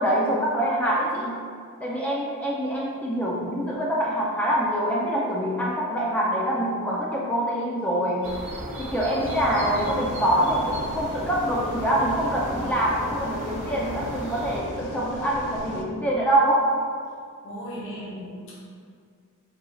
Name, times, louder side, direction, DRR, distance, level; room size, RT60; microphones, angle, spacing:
voice 1, 0.0-1.4 1.8-8.5 8.8-16.7, right 1 dB, 5° left, -4 dB, 0.3 m, -25 dB
sound 1, 8.2-14.6, right 1 dB, 30° right, 0.8 m, -36 dB
sound 2, 9.2-15.8, left 2 dB, 85° left, 0.4 m, -37 dB
voice 2, 17.4-18.6, equal, 60° left, -7 dB, 0.9 m, -36 dB
4.0 x 4.0 x 2.3 m, 2.2 s
head